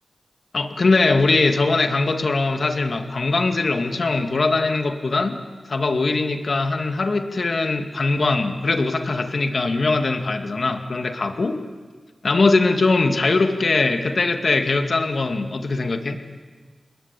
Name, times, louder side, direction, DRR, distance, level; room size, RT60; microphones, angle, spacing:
voice 1, 0.5-5.4 5.7-11.6 12.2-16.2, left 3 dB, 65° left, 6 dB, 2.3 m, -21 dB
28.0 x 20.5 x 8.5 m, 1.5 s
cardioid pair, 40°, 0 cm